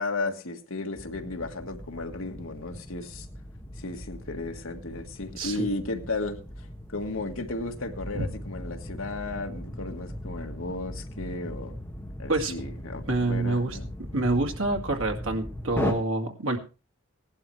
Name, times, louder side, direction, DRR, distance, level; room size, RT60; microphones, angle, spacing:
voice 1, 0.0-3.3 3.8-6.4 6.9-11.8 12.2-13.9, left 2 dB, 80° left, 1.6 m, -34 dB
sound 1, 0.9-15.9, left 1 dB, 10° left, 1.6 m, -38 dB
voice 2, 5.4-5.7 8.1-8.3 12.3-12.5 13.1-13.8 14.1-16.6, right 2 dB, 90° right, 2.2 m, -27 dB
17.0 x 11.5 x 3.3 m
head